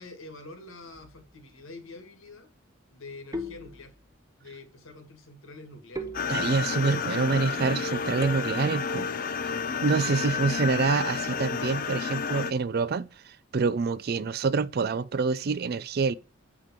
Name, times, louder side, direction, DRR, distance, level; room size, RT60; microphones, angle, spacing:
voice 1, 0.0-2.5 2.9-3.9 4.4-6.1, left 3 dB, 75° left, 1.7 m, -46 dB
sound 1, 0.9-1.5 3.3-4.3 5.9-6.9 8.2-8.9, equal, 20° right, 0.7 m, -40 dB
sound 2, 6.1-12.5, left 6 dB, 40° left, 0.5 m, -30 dB
voice 2, 6.3-9.1 9.8-16.1, right 4 dB, 50° right, 0.4 m, -26 dB
6.6 x 5.0 x 5.8 m
head